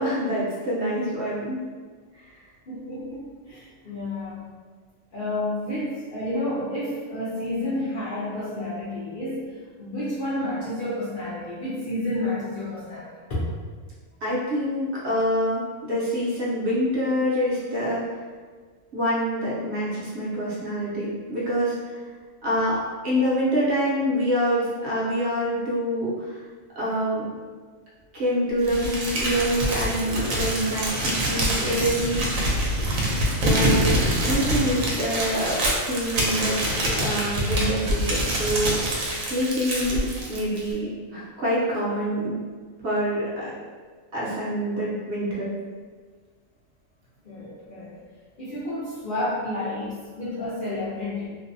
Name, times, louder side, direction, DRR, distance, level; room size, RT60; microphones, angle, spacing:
voice 1, 0.0-1.6 2.1-2.2 14.2-18.0 18.9-22.0 22.4-26.4 26.8-27.3 28.1-32.5 33.3-36.6 36.8-38.8 39.2-42.3 42.8-43.5 44.1-45.5, equal, 60° right, -7 dB, 0.9 m, -26 dB
voice 2, 2.7-4.4 5.1-13.4 40.2-40.3 47.2-48.0 48.4-51.3, left 1 dB, 55° left, -10 dB, 0.6 m, -30 dB
Crumpling crinkling, 28.6-40.7, right 1 dB, 80° right, 1.0 m, -25 dB
2.6 x 2.1 x 2.5 m, 1.5 s
omnidirectional pair, 1.4 m